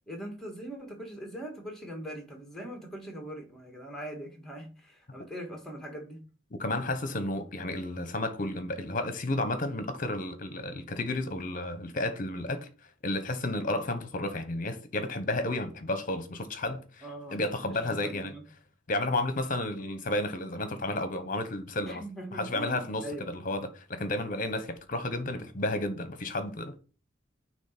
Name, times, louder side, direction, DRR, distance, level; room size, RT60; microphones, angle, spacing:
voice 1, 0.1-6.2 17.0-17.4 17.7-18.4 21.9-23.3, right 1 dB, ahead, 1.9 m, -41 dB
voice 2, 6.6-12.7 13.0-17.0 17.3-18.3 18.9-22.0 22.3-26.8, left 2 dB, 45° left, 1.1 m, -32 dB
9.1 x 3.1 x 6.0 m
head